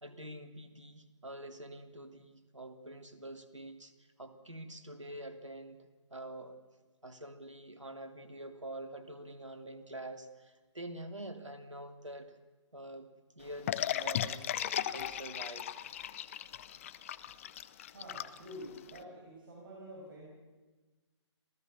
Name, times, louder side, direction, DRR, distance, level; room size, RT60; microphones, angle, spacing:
voice 1, 0.0-6.5 7.0-12.4 12.7-14.5 14.8-15.7, right 1 dB, 85° right, 7 dB, 3.1 m, -46 dB
sound 1, 13.7-19.0, left 11 dB, 25° left, 0.7 m, -36 dB
voice 2, 17.9-20.3, equal, 45° right, -3 dB, 7.3 m, -48 dB
27.0 x 17.0 x 6.9 m, 1.3 s
figure-of-eight pair, 140°, 15 cm